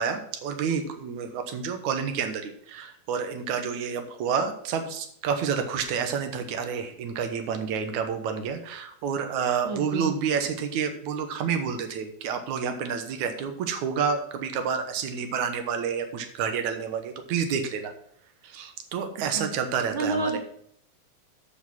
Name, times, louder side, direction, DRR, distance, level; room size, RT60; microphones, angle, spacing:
voice 1, 0.0-17.9 18.4-20.4, right 6 dB, 80° right, 7 dB, 2.5 m, -29 dB
voice 2, 9.6-10.1 19.3-19.5 19.9-20.4, right 3 dB, 50° right, -2 dB, 1.7 m, -29 dB
7.9 x 7.6 x 6.1 m, 0.66 s
omnidirectional pair, 3.4 m